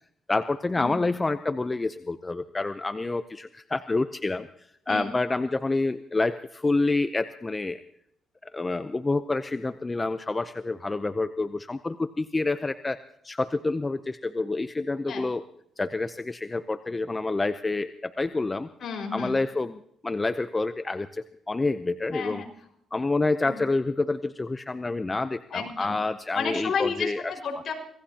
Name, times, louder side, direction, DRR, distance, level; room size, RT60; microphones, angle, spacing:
voice 1, 0.3-4.5 4.9-7.8 8.4-13.0 13.2-15.4 15.8-18.7 19.1-22.4 22.9-27.3, left 3 dB, 20° left, 11 dB, 0.7 m, -28 dB
voice 2, 18.8-19.4 22.1-22.5 23.4-23.6 25.5-26.0 26.3-27.7, left 5 dB, 55° left, 2 dB, 5.3 m, -31 dB
25.5 x 18.0 x 2.9 m, 0.71 s
cardioid pair, 90°, 0 cm